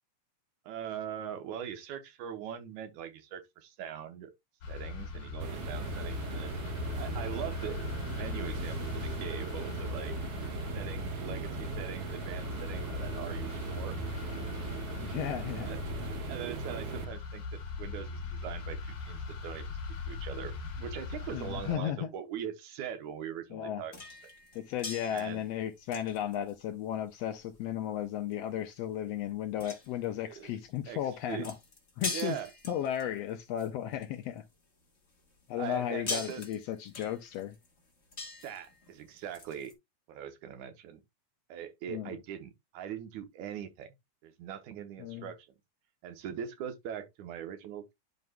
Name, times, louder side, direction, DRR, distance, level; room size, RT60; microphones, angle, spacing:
voice 1, 0.7-4.3 4.7-6.5 7.0-7.8 8.1-10.1 10.7-14.0 15.6-15.8 16.3-19.8 20.1-23.9 25.1-25.4 30.3-30.5 30.9-31.5 32.0-32.5 35.6-36.4 38.4-39.8 40.1-41.0 41.5-43.9 44.2-45.5 46.0-47.9, right 9 dB, 80° right, 2.4 m, -41 dB
sound 1, 4.6-21.8, left 4 dB, 55° left, 2.8 m, -39 dB
sound 2, 5.4-17.0, right 6 dB, 65° right, 1.6 m, -39 dB
voice 2, 15.0-15.7 21.3-22.1 23.5-23.8 24.5-31.6 32.0-32.4 32.7-34.4 35.5-37.5 41.9-42.2 45.0-45.3, left 10 dB, 75° left, 1.6 m, -35 dB
sound 3, 23.9-34.5 35.0-39.7, left 3 dB, 30° left, 1.4 m, -43 dB
11.0 x 5.3 x 2.2 m
omnidirectional pair, 3.4 m